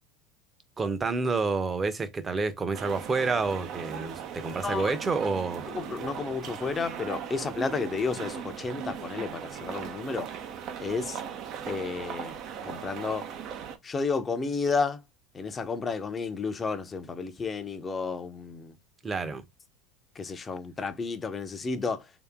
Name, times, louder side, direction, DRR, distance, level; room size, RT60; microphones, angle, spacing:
voice 1, 0.8-5.6 19.0-19.4, right 4 dB, 25° right, 0.9 m, -29 dB
sound 1, 2.7-13.8, right 8 dB, 50° right, 0.7 m, -38 dB
voice 2, 4.6-5.0 5.7-10.3 10.8-11.2 11.7-13.3 13.8-15.0 15.3-18.8 20.1-22.1, left 4 dB, 25° left, 0.8 m, -32 dB
3.2 x 2.9 x 3.6 m
hypercardioid pair, 85°, 0 cm